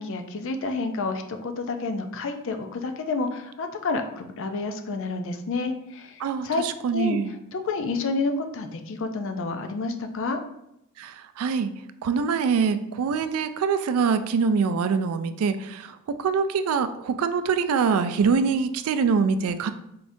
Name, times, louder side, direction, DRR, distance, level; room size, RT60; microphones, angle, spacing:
voice 1, 0.0-6.6 6.9-7.2 7.5-10.4, left 3 dB, 60° left, 6 dB, 0.4 m, -29 dB
voice 2, 6.2-7.3 11.0-11.7 12.0-19.7, right 5 dB, 75° right, 11 dB, 0.3 m, -24 dB
3.8 x 3.4 x 2.6 m, 0.82 s
head